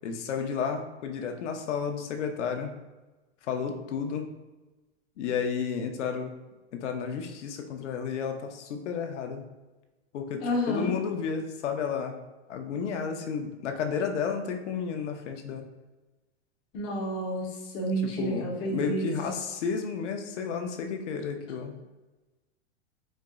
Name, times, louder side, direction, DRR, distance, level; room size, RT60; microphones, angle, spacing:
voice 1, 0.0-2.7 3.5-4.3 5.2-6.3 6.7-9.4 10.1-10.4 10.7-12.2 12.5-15.7 18.0-21.8, left 6 dB, 85° left, 5 dB, 0.7 m, -32 dB
voice 2, 10.4-10.9 16.7-17.5 17.7-19.1, equal, 15° left, -3 dB, 0.3 m, -29 dB
4.3 x 2.0 x 3.5 m, 1.2 s
supercardioid pair, 150°, 35 cm